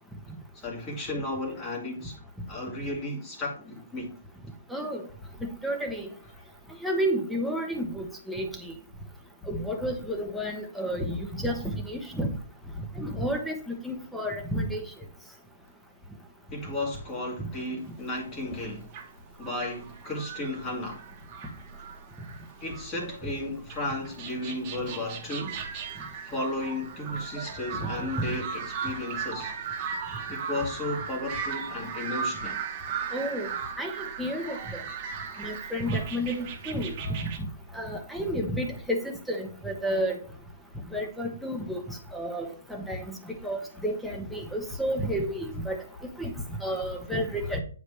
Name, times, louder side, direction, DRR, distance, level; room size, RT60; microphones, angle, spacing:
voice 1, 0.5-2.1 2.5-4.1 6.2-6.3 16.5-18.9 19.4-21.0 22.6-25.6 26.2-29.5 30.3-32.6 47.4-47.6, left 2 dB, 20° left, 2.3 m, -34 dB
voice 2, 4.7-5.0 5.6-6.0 6.8-8.5 9.5-11.6 11.9-12.3 13.0-14.8 33.1-33.5 33.8-34.6 35.4-36.9 37.8-40.2 40.9-41.8 42.1-43.0 43.4-45.8 46.2-46.3 46.6-47.6, equal, ahead, 1.0 m, -31 dB
sound 1, 18.0-18.1 18.3-23.2 23.7-37.4, right 6 dB, 25° right, 1.3 m, -37 dB
9.4 x 5.0 x 3.3 m
hypercardioid pair, 160°, 0 cm